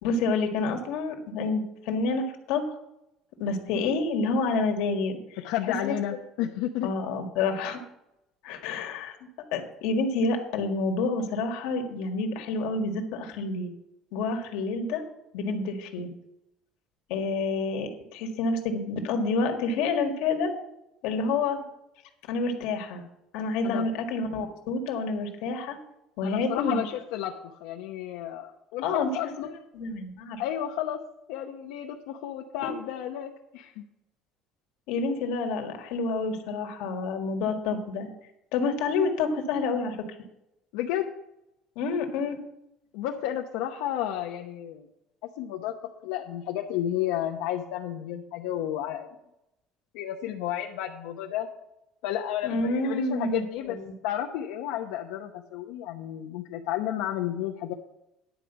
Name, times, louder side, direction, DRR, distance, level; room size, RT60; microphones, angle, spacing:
voice 1, 0.0-2.8 3.4-5.4 5.6-6.0 6.8-7.8 8.4-9.1 9.5-13.7 14.1-15.0 15.3-16.1 17.1-20.5 21.0-21.6 22.3-23.0 23.3-25.8 26.2-26.8 28.8-29.1 29.7-30.4 32.6-32.7 34.9-38.1 38.5-40.0 41.7-42.4 52.4-53.9, left 3 dB, 70° left, 4 dB, 1.7 m, -28 dB
voice 2, 5.4-6.9 23.6-23.9 26.2-29.5 30.4-31.0 31.3-33.9 40.7-41.1 42.9-44.9 45.4-45.7 46.0-49.1 49.9-51.5 52.0-53.8 54.0-57.7, left 11 dB, 85° left, 1 dB, 0.8 m, -32 dB
10.5 x 5.0 x 8.1 m, 0.85 s
cardioid pair, 170°, 0 cm